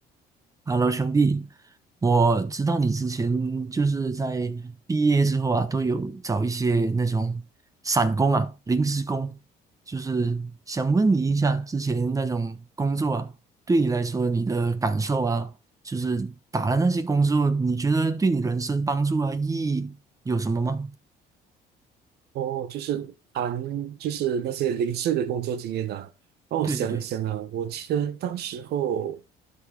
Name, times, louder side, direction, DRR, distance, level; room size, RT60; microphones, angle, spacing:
voice 1, 0.7-1.5 2.0-7.4 7.8-9.4 9.9-13.3 13.7-15.5 15.8-20.0 20.2-20.9 26.7-27.0, right 3 dB, 20° right, 1.1 m, -24 dB
voice 2, 22.3-26.1 26.5-29.2, right 9 dB, 75° right, 1.1 m, -28 dB
11.5 x 4.1 x 4.7 m
cardioid pair, 110°, 17 cm